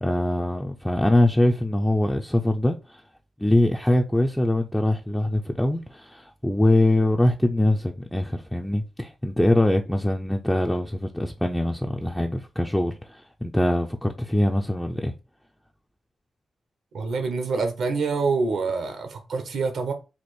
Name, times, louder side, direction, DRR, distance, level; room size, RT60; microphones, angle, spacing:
voice 1, 0.0-3.0 3.4-15.1, left 1 dB, 5° left, 0.4 m, -23 dB
voice 2, 16.9-19.9, right 4 dB, 80° right, 1.0 m, -26 dB
4.3 x 2.5 x 4.5 m
cardioid pair, 80°, 0 cm